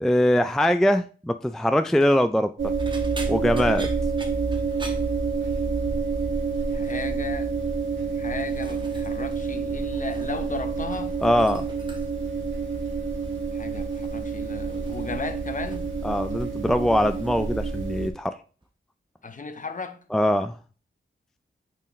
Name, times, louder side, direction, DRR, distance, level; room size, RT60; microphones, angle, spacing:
voice 1, 0.0-2.5 3.3-3.9 11.2-11.6 16.0-18.3 20.1-20.5, equal, ahead, 0.3 m, -22 dB
sound 1, 1.9-2.2 2.8-5.8 6.1-6.5 6.8-7.3 8.0-9.4 9.7-10.5 10.8-12.3 13.2-13.5 13.9-16.0 16.2-16.8 17.1-17.3 18.6-18.7, right 2 dB, 25° right, 1.3 m, -45 dB
sound 2, 2.6-18.1, right 4 dB, 75° right, 1.9 m, -28 dB
voice 2, 6.7-7.5 8.2-11.2 13.5-15.9 19.2-20.0, left 4 dB, 40° left, 0.9 m, -35 dB
8.6 x 4.6 x 3.1 m
wide cardioid pair, 90°, 20 cm